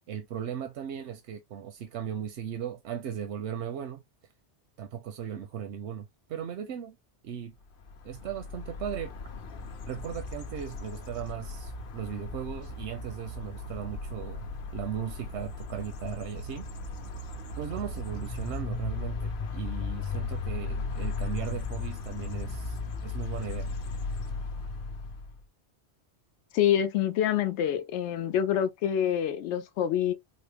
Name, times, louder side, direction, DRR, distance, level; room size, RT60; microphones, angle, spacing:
voice 1, 0.1-4.0 4.8-7.0 7.2-7.5 8.0-9.1 9.9-16.6 17.6-23.7, right 8 dB, 85° right, 0.9 m, -37 dB
sound 1, 7.8-25.4, left 3 dB, 60° left, 0.8 m, -36 dB
voice 2, 26.5-30.1, left 10 dB, 85° left, 0.9 m, -26 dB
4.2 x 2.1 x 3.3 m
omnidirectional pair, 1.1 m